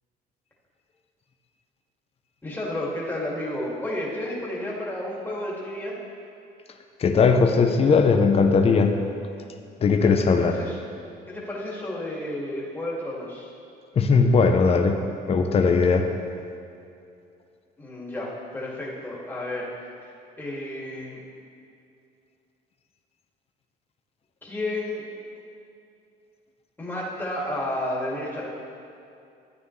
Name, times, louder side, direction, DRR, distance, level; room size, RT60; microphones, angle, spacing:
voice 1, 2.4-6.0 9.9-10.8 11.3-13.5 17.8-19.7 20.0-21.2 24.4-25.0 26.8-28.5, left 1 dB, 10° left, -5 dB, 2.3 m, -32 dB
voice 2, 7.0-9.0 9.8-10.5 14.0-15.0 15.3-16.1, left 4 dB, 35° left, 5 dB, 0.7 m, -19 dB
12.0 x 9.1 x 3.3 m, 2.6 s
cardioid pair, 110°, 17 cm